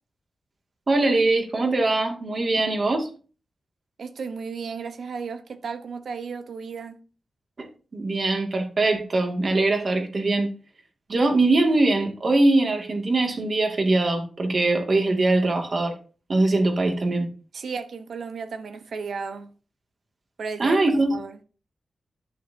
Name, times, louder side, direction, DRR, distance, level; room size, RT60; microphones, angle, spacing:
voice 1, 0.9-3.1 7.6-10.5 11.1-15.9 16.3-17.3 20.6-21.2, right 2 dB, 50° right, 2.3 m, -22 dB
voice 2, 4.0-7.0 17.5-19.5 20.4-21.4, right 5 dB, 85° right, 1.1 m, -34 dB
11.0 x 9.0 x 2.8 m
wide cardioid pair, 100°, 0 cm